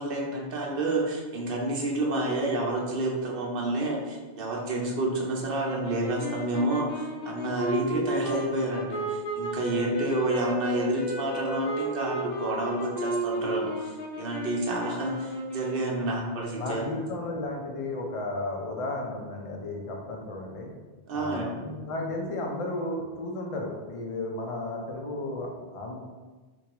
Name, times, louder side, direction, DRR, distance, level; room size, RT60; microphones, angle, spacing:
voice 1, 0.0-16.8 21.1-21.7, right 1 dB, 65° right, -1 dB, 0.8 m, -29 dB
sound 1, 5.5-16.0, right 1 dB, 85° left, 0.9 m, -33 dB
voice 2, 16.6-20.7 21.1-26.0, left 2 dB, 45° left, 0 dB, 0.5 m, -34 dB
4.5 x 2.2 x 2.9 m, 1.3 s
omnidirectional pair, 1.0 m